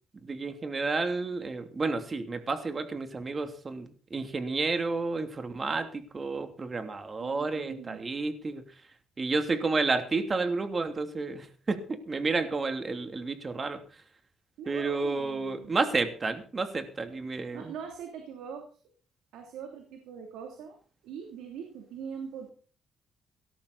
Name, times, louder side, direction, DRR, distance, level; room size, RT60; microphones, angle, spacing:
voice 1, 0.2-8.6 9.2-13.8 14.7-17.7, right 3 dB, 35° right, 7 dB, 2.9 m, -31 dB
voice 2, 7.2-8.0 14.6-15.8 17.5-18.7 19.3-20.8 21.0-22.5, right 7 dB, 90° right, 4 dB, 3.0 m, -42 dB
18.0 x 13.5 x 4.2 m, 0.40 s
cardioid pair, 90°, 0 cm